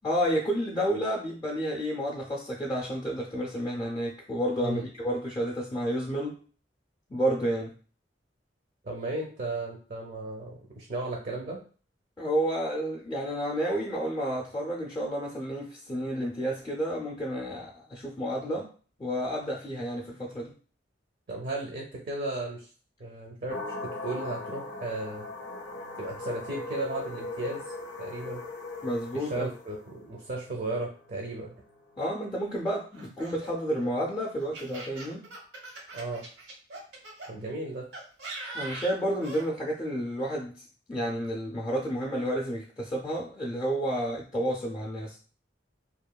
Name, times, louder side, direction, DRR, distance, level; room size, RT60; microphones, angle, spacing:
voice 1, 0.0-6.4 7.1-7.7 12.2-18.7 19.0-20.5 28.8-29.5 32.0-35.3 38.5-45.2, equal, 20° left, -3 dB, 0.4 m, -30 dB
voice 2, 8.8-11.6 21.3-22.7 23.0-25.3 26.0-27.6 28.0-28.4 29.1-31.6 35.9-36.3 37.3-37.9, right 2 dB, 50° right, 0 dB, 0.5 m, -35 dB
sound 1, 23.5-32.4, left 2 dB, 80° left, 0.5 m, -39 dB
Laughter, 32.9-37.3 37.9-39.5, right 2 dB, 90° right, 1.0 m, -41 dB
2.9 x 2.2 x 2.2 m, 0.40 s
head